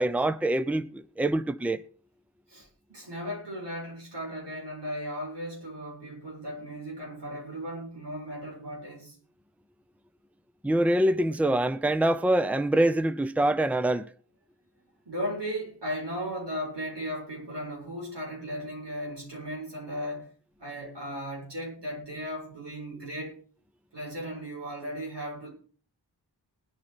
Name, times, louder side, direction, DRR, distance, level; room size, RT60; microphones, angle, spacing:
voice 1, 0.0-1.8 10.6-14.1, right 1 dB, 5° right, 0.7 m, -25 dB
voice 2, 2.5-9.2 15.0-20.3 20.6-23.4 23.9-25.5, equal, 80° right, 7.8 m, -36 dB
19.5 x 9.7 x 4.4 m
wide cardioid pair, 45°, 41 cm